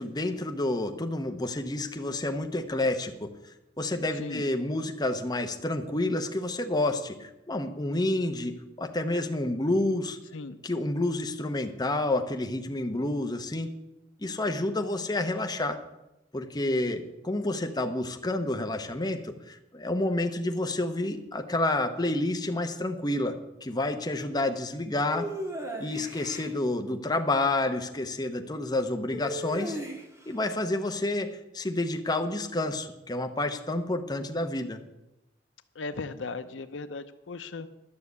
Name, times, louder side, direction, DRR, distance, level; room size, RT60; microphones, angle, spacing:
voice 1, 0.0-3.3 3.8-10.2 10.6-13.7 14.2-15.8 16.3-25.3 25.8-29.8 30.3-34.8, left 2 dB, 20° left, 5 dB, 0.9 m, -29 dB
sound 1, 25.1-26.5 29.1-30.3, equal, 15° right, 1.7 m, -36 dB
voice 2, 35.8-37.7, left 3 dB, 85° left, 11 dB, 0.7 m, -37 dB
11.5 x 6.6 x 8.4 m, 0.92 s
head